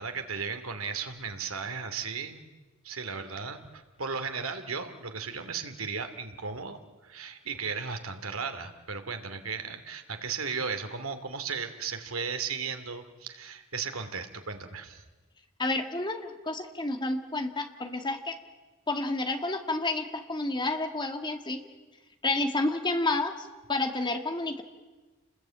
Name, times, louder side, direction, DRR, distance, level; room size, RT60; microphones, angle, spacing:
voice 1, 0.0-2.5 2.8-15.0, right 5 dB, 90° right, 7 dB, 2.5 m, -36 dB
voice 2, 15.6-18.4 18.9-21.6 22.2-24.6, left 2 dB, 20° left, 6 dB, 2.1 m, -30 dB
29.5 x 21.0 x 8.9 m, 1.3 s
head